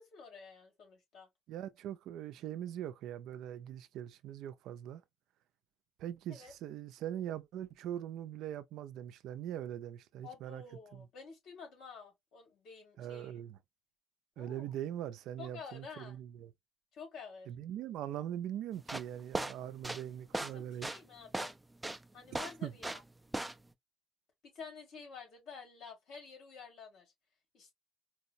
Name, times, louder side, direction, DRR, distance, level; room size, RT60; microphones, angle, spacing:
voice 1, 0.0-1.3 6.3-6.5 10.2-13.4 14.4-14.7 15.4-16.2 16.9-17.5 20.3-21.6 22.1-23.0 24.4-27.1 27.5-27.7, left 5 dB, 80° left, 2.2 m, -50 dB
voice 2, 1.5-5.0 6.0-10.6 10.9-11.1 13.0-13.6 14.4-16.5 17.5-20.9 22.6-22.7, right 11 dB, 90° right, 0.4 m, -41 dB
sound 1, 18.8-23.1 23.3-23.7, right 2 dB, 10° right, 0.4 m, -37 dB
4.6 x 2.0 x 2.6 m
cardioid pair, 90°, 0 cm